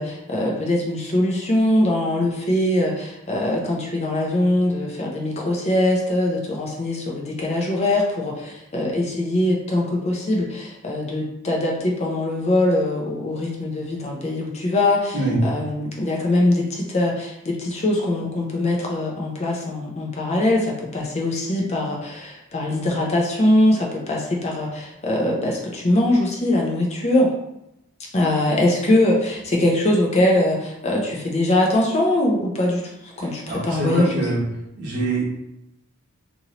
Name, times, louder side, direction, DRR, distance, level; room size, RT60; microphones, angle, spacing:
voice 1, 0.0-27.3 28.1-34.1, left 1 dB, 30° left, -1 dB, 0.4 m, -22 dB
voice 2, 33.2-34.4 34.8-35.2, right 2 dB, 55° right, -6 dB, 1.0 m, -24 dB
2.9 x 2.6 x 2.8 m, 0.85 s
head